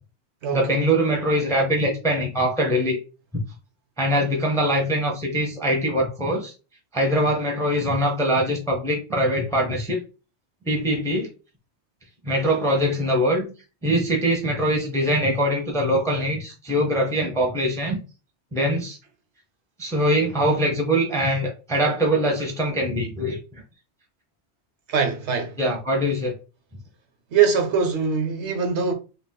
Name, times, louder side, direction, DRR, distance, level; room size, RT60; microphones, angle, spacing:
voice 1, 0.5-3.0 3.3-3.4 4.0-6.5 6.9-10.0 10.7-11.3 12.2-13.5 13.8-18.0 18.5-19.0 19.8-23.4 25.6-26.3, equal, 5° left, 0.5 m, -22 dB
voice 2, 24.9-25.6 27.3-28.9, right 6 dB, 75° right, 1.0 m, -22 dB
2.4 x 2.3 x 3.6 m
omnidirectional pair, 1.2 m